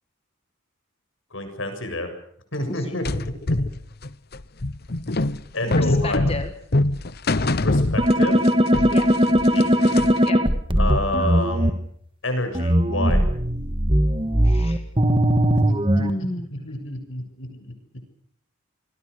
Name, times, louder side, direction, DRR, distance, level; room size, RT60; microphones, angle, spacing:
voice 1, 1.3-2.1 2.5-3.2 3.5-3.6 5.5-6.4 7.6-8.4 9.5-9.7 10.8-11.8 12.2-13.2 15.7-15.8 16.5-17.7, left 1 dB, 75° left, 7 dB, 7.1 m, -29 dB
voice 2, 2.7-3.0 5.7-6.5 8.9-9.1 10.2-10.4 14.4-14.8 15.9-16.6, left 1 dB, 30° left, 7 dB, 1.7 m, -32 dB
sound 1, 3.0-8.5 8.7-10.3, left 2 dB, 50° left, 1.0 m, -24 dB
sound 2, 8.0-11.7 12.5-16.1, equal, 25° right, 1.7 m, -19 dB
28.5 x 22.0 x 6.6 m, 0.63 s
head